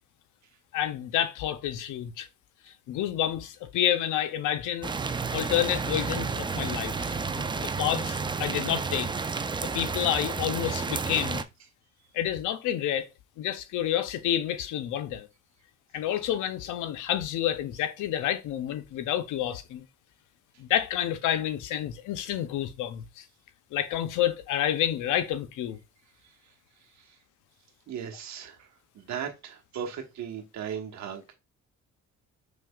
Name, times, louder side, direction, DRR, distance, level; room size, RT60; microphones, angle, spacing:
voice 1, 0.7-2.3 2.9-4.9 5.3-9.1 9.6-11.4 12.1-13.1 13.4-15.3 15.9-19.9 20.6-23.2 23.7-25.8, left 11 dB, 90° left, 0.6 m, -29 dB
sound 1, 4.8-11.4, right 4 dB, 15° right, 0.3 m, -31 dB
voice 2, 26.8-27.2 27.9-28.7 28.9-31.3, right 8 dB, 65° right, 1.2 m, -38 dB
5.3 x 3.2 x 2.3 m
cardioid pair, 90°, 30 cm